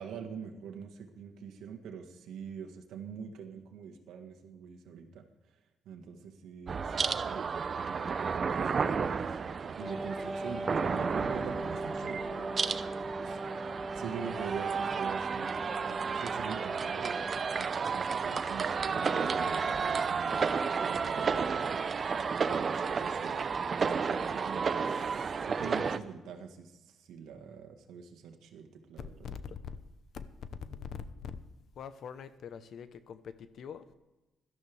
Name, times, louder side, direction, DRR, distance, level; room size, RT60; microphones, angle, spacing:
voice 1, 0.0-5.2 5.9-9.0 9.8-15.5 15.9-17.3 17.6-20.4 20.8-21.4 21.7-21.8 22.5-23.5 24.0-24.9 25.1-26.7 27.0-29.1, right 6 dB, 80° right, 3 dB, 1.6 m, -44 dB
sound 1, 6.7-26.0, right 5 dB, 45° right, 0.6 m, -32 dB
Wind instrument woodwind instrument, 9.8-17.9, right 1 dB, ahead, 0.6 m, -40 dB
voice 2, 29.0-29.8 30.1-30.2 30.6-31.4 31.8-33.9, left 7 dB, 65° left, 12 dB, 0.9 m, -43 dB
17.0 x 12.5 x 3.5 m, 1.1 s
cardioid pair, 90°, 0 cm